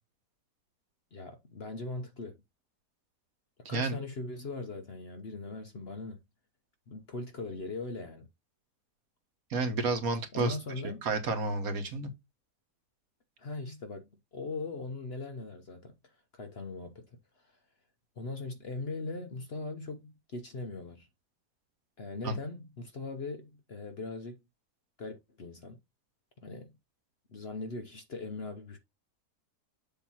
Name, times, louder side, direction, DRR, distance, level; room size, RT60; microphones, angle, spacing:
voice 1, 1.1-2.4 3.7-6.2 6.9-8.3 10.3-11.1 13.4-17.1 17.4-17.6 18.2-21.1 22.0-24.4 25.0-25.8 26.4-26.7 27.3-28.8, left 3 dB, 45° left, 0.9 m, -40 dB
voice 2, 9.5-10.6 11.0-12.1 22.2-22.3, right 3 dB, 60° right, 1.6 m, -30 dB
7.2 x 2.9 x 5.7 m
omnidirectional pair, 1.7 m